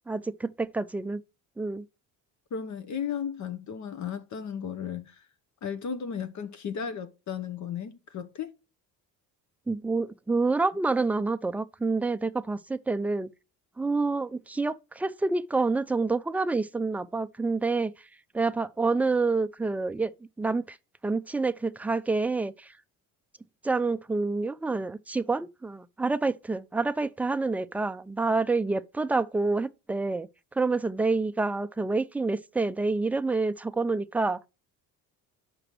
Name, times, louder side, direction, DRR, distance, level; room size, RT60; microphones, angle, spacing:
voice 1, 0.1-1.2 1.6-1.8 9.7-13.3 13.8-17.9 18.3-20.1 20.4-20.8 21.0-22.7 23.6-30.3 30.6-34.5, right 3 dB, 5° right, 0.3 m, -28 dB
voice 2, 2.5-5.3 5.6-8.5, left 7 dB, 50° left, 0.9 m, -35 dB
6.1 x 5.0 x 6.0 m
cardioid pair, 90°, 37 cm